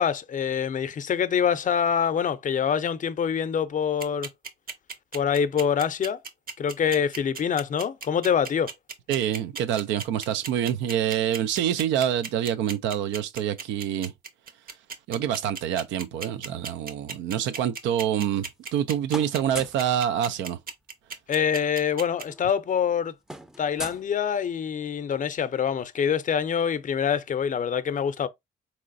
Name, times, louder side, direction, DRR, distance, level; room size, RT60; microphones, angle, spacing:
voice 1, 0.0-4.3 5.1-6.2 6.6-8.7 21.3-23.1 23.6-28.3, left 7 dB, 45° left, 0.5 m, -25 dB
sound 1, 4.0-22.2, right 5 dB, 50° right, 0.9 m, -36 dB
voice 2, 9.1-14.1 15.1-20.6, right 10 dB, 85° right, 0.4 m, -26 dB
Letter in mailbox, 18.0-18.8 19.1-19.9 21.3-21.4 21.6-21.8 22.1-24.7, equal, 5° right, 0.5 m, -41 dB
3.8 x 3.0 x 2.5 m
supercardioid pair, 65°, 19 cm